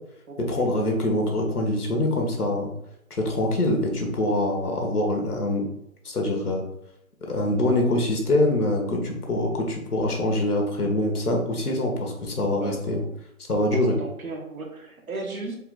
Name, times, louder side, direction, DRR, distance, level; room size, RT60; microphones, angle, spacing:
voice 1, 0.4-2.7 3.2-5.7 6.0-6.6 7.3-13.0 13.5-14.0, left 1 dB, 85° left, 1 dB, 1.4 m, -24 dB
voice 2, 12.6-13.0 13.7-15.6, right 2 dB, 70° right, 1 dB, 1.3 m, -35 dB
4.5 x 2.3 x 3.9 m, 0.78 s
figure-of-eight pair, 170°, 44 cm